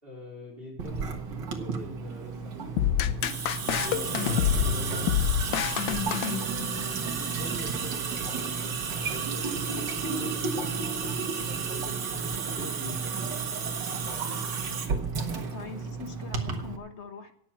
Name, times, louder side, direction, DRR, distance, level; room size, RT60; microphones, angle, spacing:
voice 1, 0.0-5.1 6.2-13.5 13.8-14.4, equal, 25° right, 4.2 m, -44 dB
Water tap faucet / Sink (filling or washing) / Drip, 0.8-16.8, right 5 dB, 55° right, 2.1 m, -32 dB
sound 1, 2.8-6.9, left 11 dB, 70° left, 1.3 m, -27 dB
voice 2, 15.3-17.3, left 5 dB, 40° left, 1.3 m, -42 dB
18.0 x 7.7 x 5.8 m
omnidirectional pair, 2.4 m